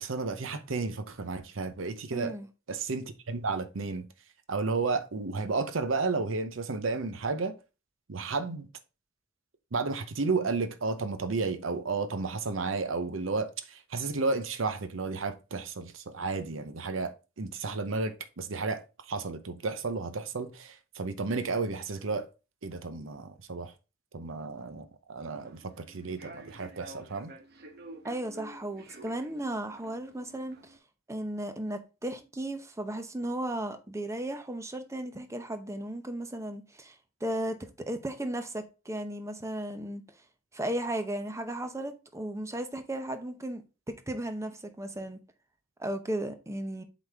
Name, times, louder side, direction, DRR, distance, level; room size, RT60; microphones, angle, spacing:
voice 1, 0.0-2.4 2.7-4.1 4.5-7.6 8.1-8.7 9.7-22.3 22.6-23.7 24.1-27.3, right 4 dB, 90° right, 0.8 m, -32 dB
voice 2, 2.1-2.5 28.0-30.8 31.1-37.0 37.2-40.0 40.5-43.6 44.1-45.2 45.8-46.8, right 1 dB, 15° right, 0.7 m, -35 dB
Human voice / Subway metro underground, 25.3-30.8, right 1 dB, 55° right, 1.1 m, -50 dB
7.9 x 4.1 x 3.5 m
head